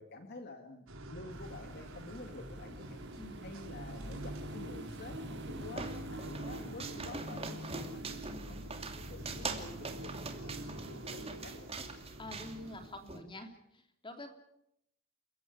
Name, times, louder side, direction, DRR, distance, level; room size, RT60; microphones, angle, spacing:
voice 1, 0.0-3.0 3.4-11.7, left 2 dB, 50° left, 5 dB, 2.1 m, -49 dB
sound 1, 0.9-12.9, right 1 dB, 75° right, 4.4 m, -45 dB
sound 2, 1.3-8.3, right 3 dB, 55° right, 2.0 m, -55 dB
voice 2, 3.2-3.5 8.3-8.6 12.2-14.3, left 2 dB, 25° left, 5 dB, 3.1 m, -47 dB
sound 3, 5.0-13.2, right 4 dB, 30° right, 2.7 m, -44 dB
29.5 x 16.0 x 8.6 m, 0.79 s
head